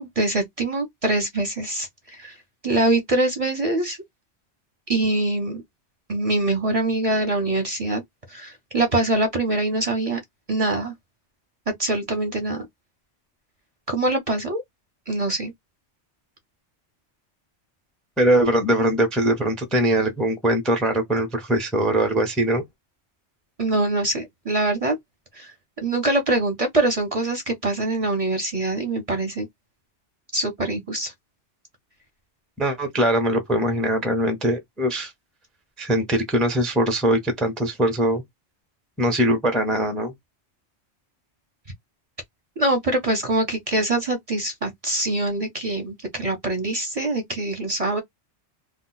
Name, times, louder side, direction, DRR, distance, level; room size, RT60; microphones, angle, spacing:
voice 1, 0.0-2.4 2.6-4.0 4.9-5.6 6.1-8.0 8.3-10.2 10.5-10.9 11.8-12.7 13.9-14.6 15.1-15.5 23.6-24.9 25.3-25.5 25.8-29.5 30.3-31.1 42.6-48.0, right 2 dB, 35° right, 0.7 m, -24 dB
voice 2, 18.2-22.6 32.6-35.1 35.8-38.2 39.0-40.1, right 1 dB, ahead, 0.6 m, -21 dB
2.3 x 2.2 x 3.9 m
omnidirectional pair, 1.2 m